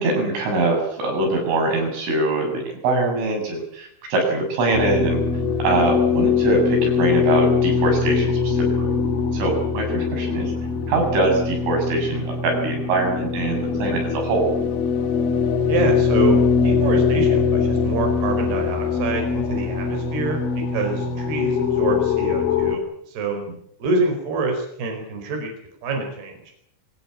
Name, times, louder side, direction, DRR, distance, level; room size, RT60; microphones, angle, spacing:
voice 1, 0.0-5.2 5.6-8.9 9.3-10.5 10.9-14.5, right 2 dB, 85° right, 2 dB, 9.5 m, -23 dB
sound 1, 4.7-22.8, left 5 dB, 85° left, 5.0 m, -22 dB
voice 2, 15.7-23.4 23.8-25.5 25.8-26.4, right 3 dB, 55° right, 3 dB, 6.5 m, -26 dB
24.5 x 18.0 x 8.8 m, 0.73 s
omnidirectional pair, 5.5 m